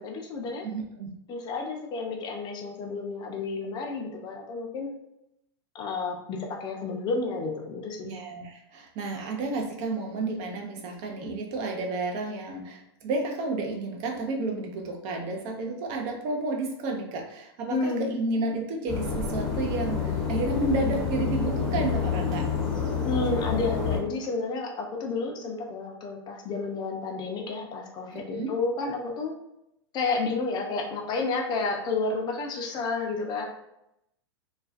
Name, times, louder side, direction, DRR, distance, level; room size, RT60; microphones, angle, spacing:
voice 1, 0.0-0.7 1.3-4.9 5.7-8.1 17.7-18.1 23.0-29.4 29.9-33.5, left 3 dB, 30° left, 1 dB, 0.4 m, -31 dB
voice 2, 0.6-1.1 8.0-22.5 28.1-28.5, right 2 dB, 45° right, 2 dB, 0.5 m, -31 dB
sound 1, 18.9-24.0, left 6 dB, 5° left, 0.7 m, -28 dB
2.3 x 2.2 x 2.4 m, 0.82 s
hypercardioid pair, 115°, 14 cm